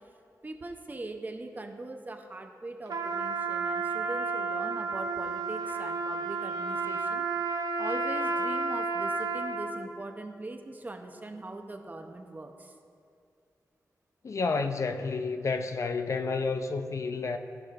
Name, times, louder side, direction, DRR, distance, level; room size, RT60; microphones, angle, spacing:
voice 1, 0.4-7.2 7.8-12.7, right 2 dB, 25° right, 0.7 m, -41 dB
Trumpet, 2.9-9.9, right 4 dB, 80° right, 0.6 m, -31 dB
voice 2, 14.2-17.4, left 4 dB, 50° left, 0.4 m, -30 dB
16.0 x 6.2 x 2.5 m
wide cardioid pair, 110°, 6 cm